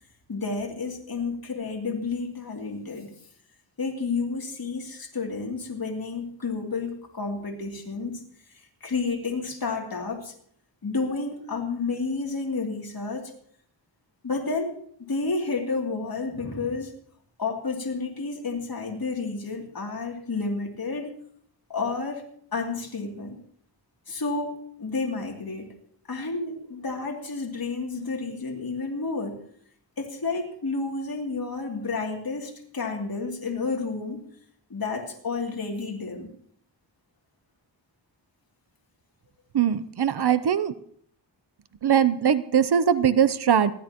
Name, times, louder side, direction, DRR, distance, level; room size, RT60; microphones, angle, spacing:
voice 1, 0.3-3.1 3.8-8.2 8.8-10.3 10.8-13.3 14.2-14.7 15.0-16.9 17.4-21.1 21.7-22.2 22.5-23.4 24.1-24.5 24.8-25.7 26.1-29.3 30.0-34.2 34.7-36.3, left 4 dB, 50° left, 0 dB, 2.9 m, -30 dB
voice 2, 39.5-40.7 41.8-43.7, right 8 dB, 60° right, 14 dB, 0.7 m, -21 dB
28.0 x 12.0 x 3.0 m, 0.65 s
wide cardioid pair, 120°, 44 cm